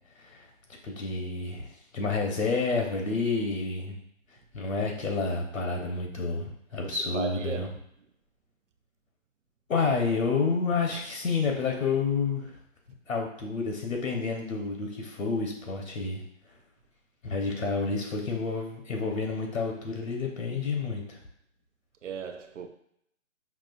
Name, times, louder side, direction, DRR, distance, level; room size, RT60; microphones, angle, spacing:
voice 1, 0.8-4.0 4.5-7.7 9.7-12.6 13.1-16.2 17.2-21.2, left 4 dB, 80° left, 1.1 m, -29 dB
voice 2, 6.8-7.7 22.0-22.7, right 6 dB, 65° right, 0.6 m, -36 dB
6.0 x 2.4 x 2.5 m
hypercardioid pair, 165°, 39 cm